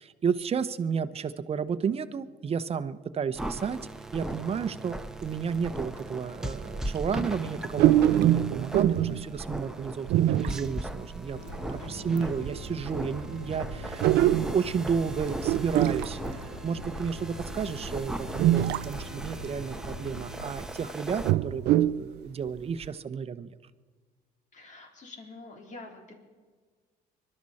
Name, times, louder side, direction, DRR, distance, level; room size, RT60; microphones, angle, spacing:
voice 1, 0.0-3.8 4.1-11.4 11.7-23.5, right 6 dB, 35° right, 12 dB, 0.9 m, -32 dB
sound 1, 3.3-21.3, right 1 dB, 5° right, 1.0 m, -38 dB
sound 2, 5.6-5.7 6.5-6.6 6.9-7.2 7.7-9.3 10.1-10.9 11.3-11.4 12.2-12.3 12.5-15.1 15.4-17.0 17.7-17.8 18.4-19.1 19.4-19.5 20.1-20.5 21.0-22.1 22.5-22.6 22.8-22.9, right 13 dB, 80° right, 0.5 m, -24 dB
voice 2, 8.9-9.2 11.8-12.4 24.5-26.1, left 2 dB, 45° left, 2 dB, 3.9 m, -47 dB
sound 3, 11.3-20.6, left 1 dB, 85° left, 6.6 m, -42 dB
25.0 x 12.0 x 4.3 m, 1.5 s
cardioid pair, 110°, 17 cm